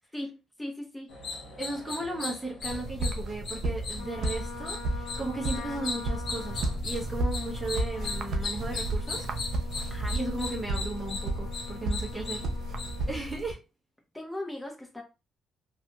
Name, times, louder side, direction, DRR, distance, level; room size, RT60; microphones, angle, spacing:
voice 1, 0.6-1.1 9.9-10.2 12.1-12.3 14.1-15.0, left 1 dB, 10° left, 0.9 m, -38 dB
sound 1, 1.1-13.2, left 3 dB, 60° left, 1.1 m, -39 dB
voice 2, 1.6-9.3 10.1-12.5 13.1-13.6, right 2 dB, 15° right, 0.7 m, -36 dB
sound 2, 2.6-13.5, right 1 dB, 65° right, 0.5 m, -33 dB
Trumpet, 3.9-13.3, left 6 dB, 90° left, 0.5 m, -45 dB
2.7 x 2.4 x 2.3 m
supercardioid pair, 55°, 0 cm